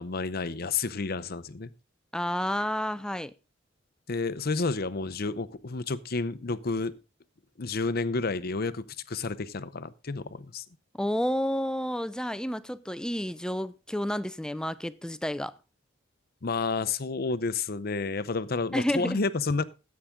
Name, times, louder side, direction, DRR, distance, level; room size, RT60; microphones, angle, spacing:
voice 1, 0.0-1.7 4.1-6.9 7.6-10.6 16.4-19.6, left 4 dB, 50° left, 0.7 m, -30 dB
voice 2, 2.1-3.3 11.0-15.5 18.7-19.2, equal, 5° left, 0.5 m, -30 dB
14.5 x 8.5 x 3.7 m
head